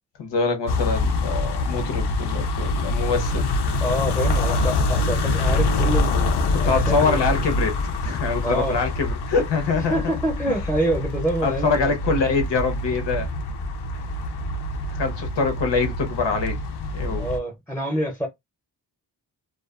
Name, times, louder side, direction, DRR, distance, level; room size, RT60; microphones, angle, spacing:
voice 1, 0.2-3.5 6.6-7.7 8.0-10.2 10.5-10.6 11.4-13.3 13.9-14.0 14.9-16.6 16.9-17.3, left 4 dB, 90° left, 1.0 m, -24 dB
sound 1, 0.7-17.4, left 2 dB, 70° left, 0.6 m, -25 dB
voice 2, 3.8-7.4 8.4-8.8 9.9-11.9 17.1-18.3, right 1 dB, 5° left, 0.7 m, -27 dB
2.4 x 2.4 x 2.3 m
wide cardioid pair, 110°, 41 cm